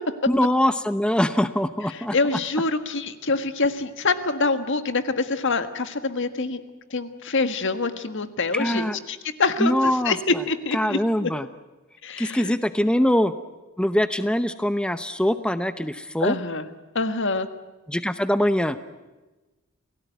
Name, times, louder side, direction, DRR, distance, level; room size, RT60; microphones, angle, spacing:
voice 1, 0.3-2.1 8.5-9.0 9.6-10.4 10.7-11.5 12.2-13.3 13.8-16.4 17.9-18.8, equal, 5° left, 11 dB, 0.8 m, -23 dB
voice 2, 1.9-6.6 6.9-11.3 12.0-12.6 16.2-16.7 16.9-17.5, left 3 dB, 60° left, 10 dB, 1.6 m, -25 dB
28.5 x 18.0 x 9.3 m, 1.2 s
head